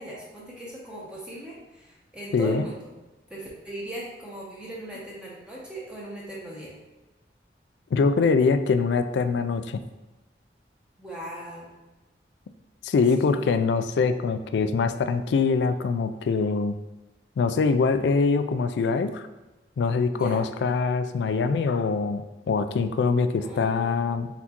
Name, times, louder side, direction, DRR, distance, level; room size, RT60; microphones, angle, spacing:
voice 1, 0.0-2.9 3.3-6.7 11.0-11.8 13.2-13.5 20.1-20.4 23.3-24.3, right 1 dB, 5° right, -5 dB, 0.7 m, -39 dB
voice 2, 2.3-2.6 7.9-9.8 12.8-16.8 17.4-19.2 19.8-24.3, left 4 dB, 75° left, 10 dB, 0.3 m, -23 dB
4.2 x 4.0 x 2.9 m, 1.1 s
head